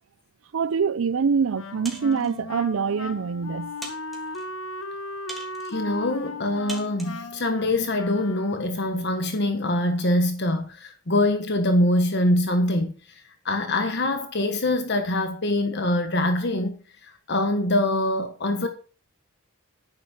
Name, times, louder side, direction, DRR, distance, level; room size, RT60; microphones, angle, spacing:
voice 1, 0.5-3.7, right 6 dB, 80° right, 0.5 m, -24 dB
Wind instrument woodwind instrument, 1.5-8.8, left 2 dB, 80° left, 1.3 m, -37 dB
sound 1, 1.8-2.4 3.1-3.2 3.8-4.5 5.3-5.8 6.7-7.2, right 2 dB, ahead, 3.2 m, -40 dB
voice 2, 5.7-12.9 13.4-16.7 17.3-18.7, left 1 dB, 55° left, 1.3 m, -24 dB
11.5 x 10.0 x 4.4 m
head